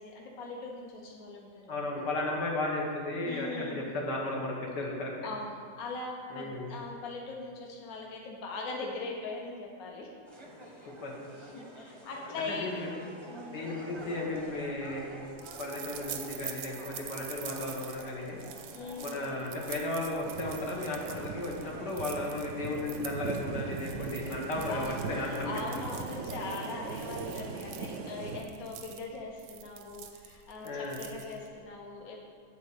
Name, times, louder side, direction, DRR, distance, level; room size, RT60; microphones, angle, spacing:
voice 1, 0.0-1.8 3.2-3.9 5.2-10.1 10.6-10.9 11.4-12.8 13.3-13.7 18.7-19.1 24.0-24.3 24.7-32.2, left 3 dB, 60° left, -1 dB, 1.3 m, -41 dB
voice 2, 1.7-5.1 6.3-6.7 11.0-11.1 12.5-12.9 13.5-15.1 15.6-18.4 19.0-25.5 30.6-31.0, left 2 dB, 80° left, -2 dB, 1.9 m, -34 dB
sound 1, 10.2-21.9, right 1 dB, 25° right, 0.6 m, -49 dB
sound 2, 14.2-31.6, right 9 dB, 85° right, 1.3 m, -46 dB
sound 3, 20.2-28.4, right 5 dB, 65° right, 0.7 m, -40 dB
9.3 x 4.1 x 6.6 m, 2.2 s
omnidirectional pair, 1.8 m